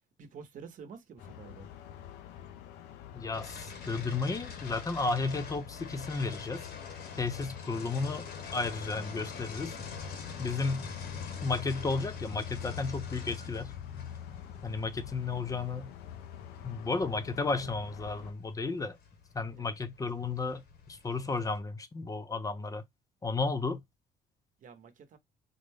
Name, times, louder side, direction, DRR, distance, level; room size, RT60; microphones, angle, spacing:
voice 1, 0.2-1.7 24.6-25.2, right 6 dB, 50° right, 0.9 m, -48 dB
sound 1, 1.2-18.3, left 8 dB, 85° left, 0.4 m, -45 dB
voice 2, 3.1-6.7 7.2-8.3 8.5-9.8 10.4-10.9 11.4-13.7 14.6-15.9 16.6-19.0 19.3-22.8 23.2-23.8, left 3 dB, 20° left, 0.5 m, -33 dB
sound 2, 3.3-21.6, left 5 dB, 70° left, 1.0 m, -47 dB
3.8 x 2.1 x 3.3 m
cardioid pair, 110°, 17 cm